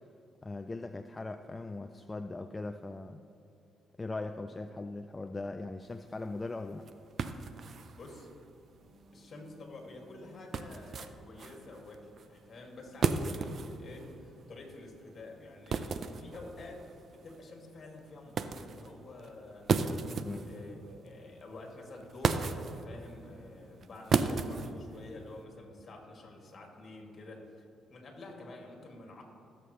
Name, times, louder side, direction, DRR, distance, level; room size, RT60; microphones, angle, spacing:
voice 1, 0.4-3.2 4.0-6.9 20.2-20.4, left 2 dB, 20° left, 7 dB, 0.4 m, -39 dB
sound 1, 5.8-25.4, right 5 dB, 55° right, 0.5 m, -37 dB
voice 2, 7.7-8.3 9.1-19.7 20.1-27.6 27.9-29.2, left 2 dB, 45° left, 0 dB, 2.2 m, -49 dB
Bass guitar, 8.8-15.0, equal, 5° left, 2.0 m, -64 dB
16.5 x 7.1 x 3.2 m, 2.6 s
cardioid pair, 90°, 0 cm